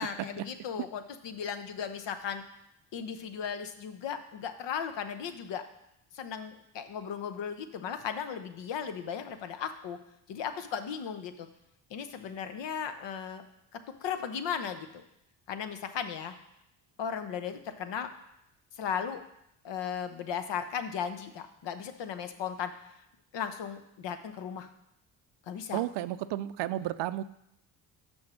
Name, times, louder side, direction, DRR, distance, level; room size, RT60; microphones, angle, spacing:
voice 1, 0.0-2.4 2.9-5.6 6.1-10.0 10.3-11.5 11.9-13.4 14.0-15.0 15.5-16.3 17.0-18.1 18.7-19.2 19.6-22.7 23.3-24.7 25.5-25.8, left 7 dB, 65° left, 9 dB, 0.9 m, -36 dB
voice 2, 25.7-27.2, right 14 dB, 60° right, 15 dB, 0.5 m, -32 dB
6.2 x 5.6 x 6.2 m, 0.80 s
supercardioid pair, 55°, 47 cm